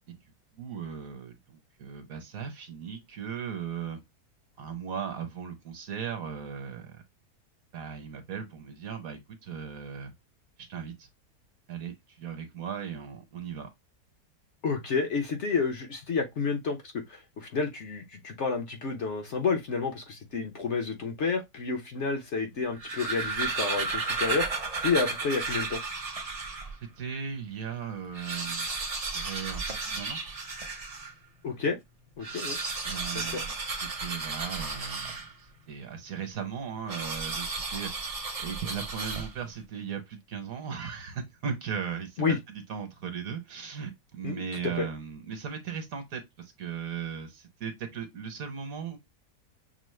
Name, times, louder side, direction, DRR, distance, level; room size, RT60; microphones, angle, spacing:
voice 1, 0.5-1.4 1.8-4.0 4.6-7.0 7.7-10.1 10.7-11.1 11.7-13.7 27.0-28.7 29.1-30.2 32.8-49.0, right 7 dB, 65° right, 1.3 m, -37 dB
voice 2, 14.6-16.8 17.1-24.5 24.8-25.8 31.4-31.8 32.2-32.6 33.1-33.4 42.2-42.4 44.2-44.3 44.6-44.9, left 4 dB, 55° left, 1.0 m, -30 dB
sound 1, 22.6-26.8 27.3-27.4 27.6-27.7 28.0-31.2 32.1-35.6 36.9-39.6, right 3 dB, 40° right, 0.5 m, -33 dB
6.0 x 2.0 x 3.1 m
omnidirectional pair, 1.7 m